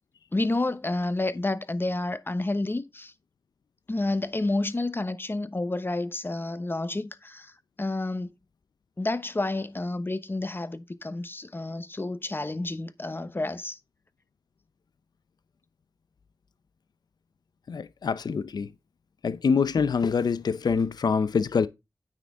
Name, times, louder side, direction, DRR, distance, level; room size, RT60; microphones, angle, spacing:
voice 1, 0.3-3.1 3.9-7.5 7.8-8.3 9.0-13.8, left 2 dB, 30° left, 1.0 m, -30 dB
voice 2, 17.7-18.7 19.2-21.7, left 5 dB, 75° left, 0.5 m, -25 dB
9.1 x 6.2 x 3.6 m
cardioid pair, 50°, 7 cm